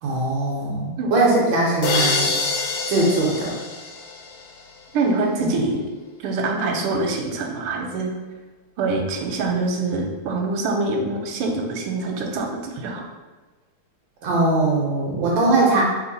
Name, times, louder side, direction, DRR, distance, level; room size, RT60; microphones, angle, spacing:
voice 1, 0.0-2.3 2.9-3.5 5.4-5.5 14.2-15.8, right 2 dB, 70° right, -3 dB, 1.4 m, -20 dB
sound 1, 1.8-4.7, left 4 dB, 75° left, 0.8 m, -25 dB
voice 2, 4.9-5.8 6.2-8.1 8.8-13.0, right 3 dB, 90° right, 1 dB, 1.6 m, -24 dB
3.5 x 3.0 x 4.0 m, 1.3 s
omnidirectional pair, 2.3 m